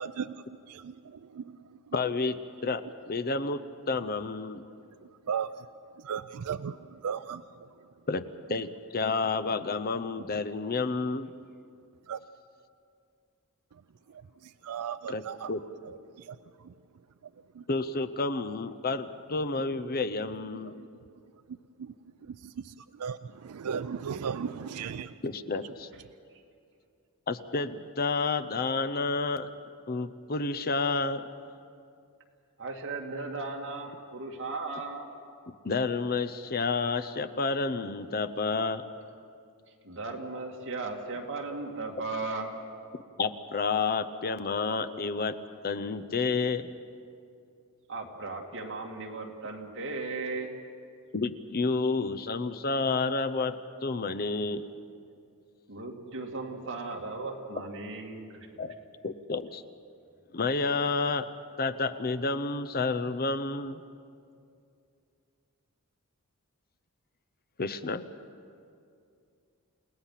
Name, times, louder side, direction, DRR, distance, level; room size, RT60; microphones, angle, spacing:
voice 1, 0.0-2.0 4.7-5.7 6.0-7.9 12.1-12.2 13.7-13.8 14.1-15.5 15.8-17.7 20.5-20.9 21.5-25.2, right 7 dB, 80° right, 13 dB, 0.4 m, -38 dB
voice 2, 1.9-2.4 2.6-3.6 3.9-4.6 8.1-8.2 8.5-11.3 15.1-15.2 15.5-15.6 17.7-20.7 25.2-25.9 27.3-29.5 29.9-31.3 35.6-38.8 43.2-45.4 45.6-46.7 51.1-54.6 58.6-58.7 59.0-59.6 60.3-61.3 61.6-63.8 67.6-68.0, left 3 dB, 45° left, 11 dB, 0.7 m, -30 dB
voice 3, 32.6-35.1 39.8-42.5 47.9-50.5 55.7-58.5, right 3 dB, 60° right, 0 dB, 2.5 m, -36 dB
29.5 x 18.0 x 5.8 m, 2.4 s
head